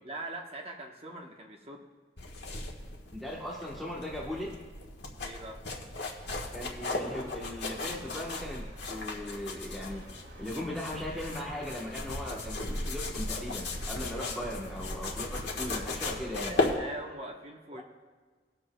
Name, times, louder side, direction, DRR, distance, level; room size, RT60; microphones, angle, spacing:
voice 1, 0.0-1.9 5.2-5.6 14.2-14.3 15.6-15.9 16.3-17.8, right 1 dB, 35° right, 1 dB, 1.1 m, -42 dB
sound 1, 2.2-16.8, left 2 dB, 85° left, 1.4 m, -36 dB
voice 2, 3.1-4.5 6.5-10.0 10.4-16.5 17.7-17.8, left 1 dB, ahead, -6 dB, 1.1 m, -38 dB
sound 2, 6.9-16.5, equal, 80° right, 1.6 m, -49 dB
22.0 x 7.7 x 2.2 m, 1.4 s
head